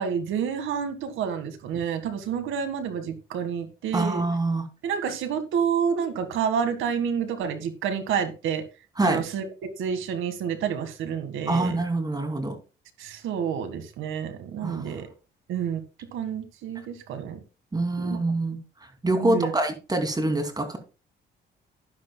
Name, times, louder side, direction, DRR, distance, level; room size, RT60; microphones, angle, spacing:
voice 1, 0.0-4.2 4.8-8.6 9.0-11.8 13.0-15.1 15.5-15.8 16.1-17.4 18.0-18.2 19.2-19.5, right 7 dB, 85° right, 9 dB, 1.8 m, -29 dB
voice 2, 3.9-4.7 9.0-9.2 11.5-12.6 14.6-14.9 17.7-18.6 19.0-20.8, right 2 dB, 20° right, 6 dB, 2.6 m, -25 dB
12.5 x 10.0 x 2.3 m, 0.31 s
cardioid pair, 90°, 20 cm